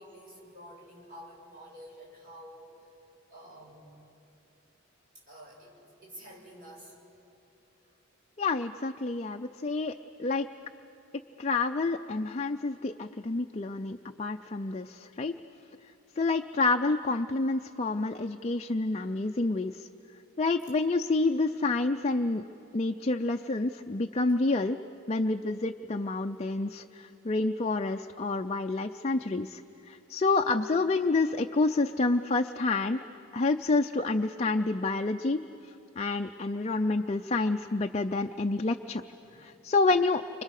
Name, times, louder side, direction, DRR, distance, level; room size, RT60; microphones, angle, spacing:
voice 1, 0.0-2.7 3.3-3.9 5.3-7.0 39.2-39.4, equal, 40° right, -3 dB, 7.2 m, -49 dB
voice 2, 8.4-10.5 11.4-15.3 16.2-19.9 20.4-22.4 22.7-24.8 25.1-33.0 33.3-35.4 36.0-39.0 39.4-40.2, left 3 dB, 30° left, 5 dB, 0.5 m, -28 dB
30.0 x 25.5 x 6.6 m, 3.0 s
head